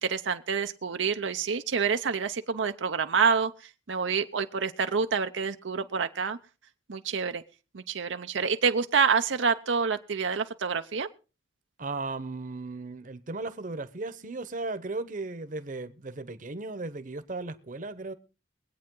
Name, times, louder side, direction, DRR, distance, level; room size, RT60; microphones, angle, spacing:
voice 1, 0.0-3.5 3.9-6.4 6.9-7.4 7.7-11.1, right 5 dB, 90° right, 0.7 m, -27 dB
voice 2, 11.8-18.1, right 3 dB, 45° right, 0.9 m, -36 dB
23.0 x 8.5 x 3.8 m
head